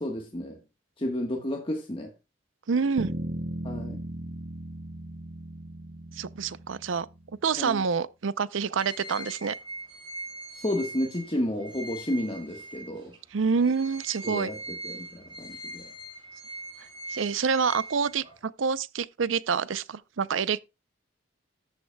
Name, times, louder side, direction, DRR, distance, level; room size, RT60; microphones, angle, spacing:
voice 1, 0.0-0.6 1.0-2.1 3.6-4.0 7.6-7.8 10.5-13.1 14.2-14.6 14.8-15.9, left 1 dB, 25° left, 1.3 m, -31 dB
voice 2, 2.7-3.1 6.1-7.1 7.4-9.5 13.3-14.5 17.1-20.6, right 5 dB, 85° right, 0.5 m, -27 dB
sound 1, 3.0-7.3, right 1 dB, 45° right, 0.8 m, -37 dB
sound 2, 8.8-13.2 13.6-18.5, right 2 dB, 25° right, 5.7 m, -41 dB
13.5 x 7.9 x 2.2 m
head